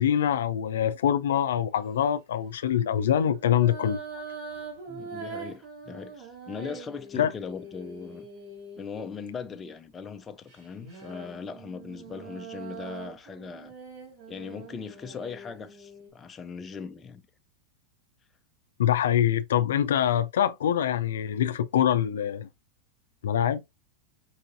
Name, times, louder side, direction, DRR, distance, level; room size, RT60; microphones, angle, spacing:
voice 1, 0.0-4.0 7.2-7.3 18.8-22.5 23.2-23.6, left 10 dB, 85° left, 0.4 m, -24 dB
sound 1, 1.3-1.6 3.0-9.6 10.5-16.1, right 4 dB, 45° right, 2.6 m, -43 dB
voice 2, 4.9-8.2 8.8-13.7 14.3-17.2, left 5 dB, 20° left, 0.6 m, -39 dB
4.7 x 2.6 x 2.6 m
hypercardioid pair, 125°, 0 cm